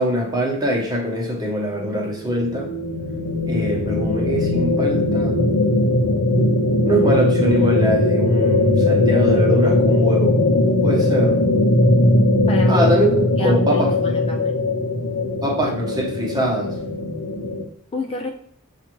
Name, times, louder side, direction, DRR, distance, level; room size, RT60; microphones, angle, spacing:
voice 1, 0.0-2.7 3.5-5.4 6.8-10.4 10.8-11.4 12.7-14.0 15.4-16.8, equal, 20° right, 1.0 m, -23 dB
sound 1, 1.8-17.6, left 2 dB, 75° left, 0.6 m, -19 dB
voice 2, 12.5-12.9 13.4-14.6 17.9-18.3, left 2 dB, 25° left, 0.3 m, -29 dB
7.1 x 2.4 x 3.0 m
head